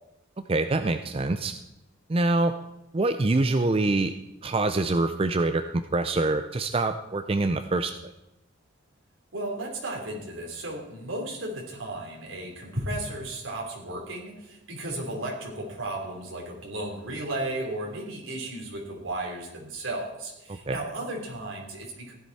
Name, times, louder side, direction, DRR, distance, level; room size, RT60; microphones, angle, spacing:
voice 1, 0.5-1.5 2.1-2.5 2.9-4.1 4.4-5.6 5.9-8.1 20.7-20.8, right 2 dB, 30° right, 8 dB, 0.4 m, -25 dB
voice 2, 9.3-22.1, right 1 dB, 75° right, -1 dB, 3.5 m, -34 dB
15.5 x 10.5 x 4.2 m, 0.91 s
head